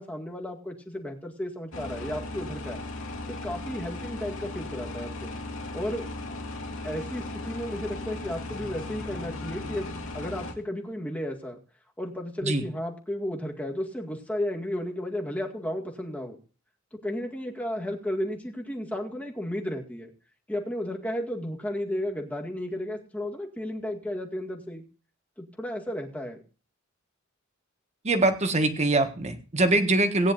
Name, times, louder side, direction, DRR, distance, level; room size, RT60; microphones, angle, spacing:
voice 1, 0.0-2.8 3.3-5.4 5.7-6.1 6.8-11.6 12.0-16.4 17.0-20.1 20.5-24.8 25.4-26.4, left 1 dB, 5° left, 0 dB, 2.0 m, -33 dB
sound 1, 1.7-10.5, left 2 dB, 90° left, 2.3 m, -37 dB
voice 2, 28.0-30.3, right 2 dB, 35° right, 7 dB, 1.5 m, -23 dB
18.5 x 9.9 x 2.6 m, 0.36 s
head